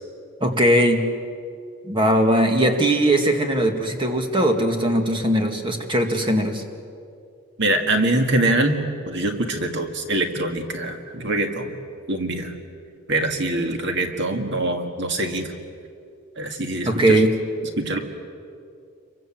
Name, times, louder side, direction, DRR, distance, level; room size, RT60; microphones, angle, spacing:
voice 1, 0.4-1.0 1.9-6.6 16.9-17.3, right 1 dB, 20° right, 4 dB, 2.1 m, -19 dB
voice 2, 7.6-11.8 12.1-12.5 13.1-15.5 16.4-17.2 17.8-18.0, right 2 dB, 50° right, 5 dB, 2.0 m, -24 dB
28.5 x 24.0 x 7.5 m, 2.4 s
head